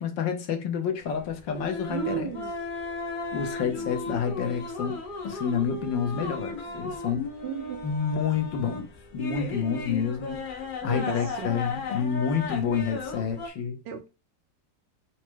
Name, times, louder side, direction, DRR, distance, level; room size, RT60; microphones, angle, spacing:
voice 1, 0.0-2.3 3.3-7.3 7.8-8.9 9.1-13.8, left 7 dB, 85° left, 1.7 m, -29 dB
sound 1, 1.0-13.5, left 3 dB, 65° left, 0.5 m, -36 dB
voice 2, 1.9-2.5 3.8-3.9 6.1-6.3 7.4-7.9 10.9-11.6 13.8-14.1, right 8 dB, 75° right, 1.5 m, -35 dB
4.8 x 2.1 x 4.4 m
omnidirectional pair, 2.0 m